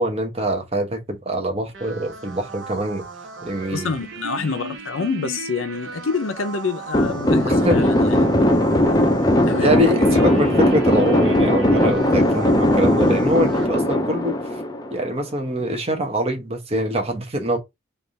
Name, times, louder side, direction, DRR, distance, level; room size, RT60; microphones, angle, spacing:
voice 1, 0.0-3.0 3.4-3.9 7.4-7.9 9.6-14.6 14.9-17.6, right 1 dB, 30° right, 0.9 m, -24 dB
sound 1, 1.7-13.7, right 2 dB, 65° right, 1.1 m, -36 dB
voice 2, 3.7-8.5 9.1-9.2 9.4-10.5 13.3-13.5, left 4 dB, 80° left, 0.7 m, -27 dB
sound 2, 6.9-15.2, left 1 dB, 20° left, 0.5 m, -18 dB
3.4 x 2.5 x 3.9 m
head